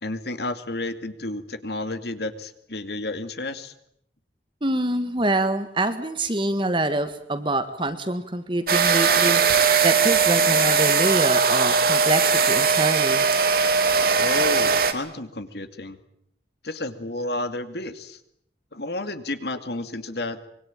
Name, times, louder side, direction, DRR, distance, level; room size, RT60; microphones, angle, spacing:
voice 1, 0.0-3.7 14.2-16.0 16.6-18.2 18.7-20.4, left 2 dB, 65° left, 10 dB, 2.4 m, -31 dB
voice 2, 4.6-13.2, right 1 dB, 25° right, 10 dB, 1.8 m, -26 dB
sound 1, 8.7-14.9, right 5 dB, 55° right, 2.7 m, -19 dB
25.0 x 24.0 x 9.1 m, 0.72 s
head